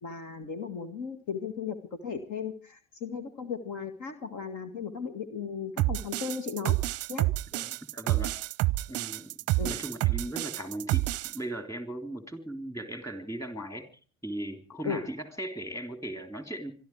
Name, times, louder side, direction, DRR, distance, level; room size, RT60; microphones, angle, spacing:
voice 1, 0.0-6.8 7.1-7.3 9.6-9.8 14.8-15.0, left 6 dB, 45° left, 8 dB, 1.9 m, -36 dB
sound 1, 5.8-11.4, right 18 dB, 40° right, 0.7 m, -28 dB
voice 2, 7.5-8.3 8.9-9.3 9.6-13.9 14.2-16.7, right 1 dB, 5° left, 7 dB, 3.6 m, -38 dB
25.5 x 12.0 x 4.7 m, 0.39 s
hypercardioid pair, 75°, 39 cm